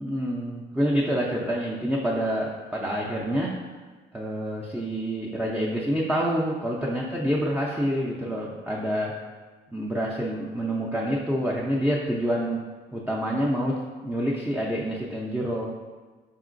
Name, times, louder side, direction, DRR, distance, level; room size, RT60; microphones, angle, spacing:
voice 1, 0.0-3.5 4.1-9.1 9.7-12.6 12.9-15.7, equal, 5° right, -4 dB, 0.5 m, -27 dB
4.0 x 3.7 x 2.5 m, 1.4 s
cardioid pair, 90°, 20 cm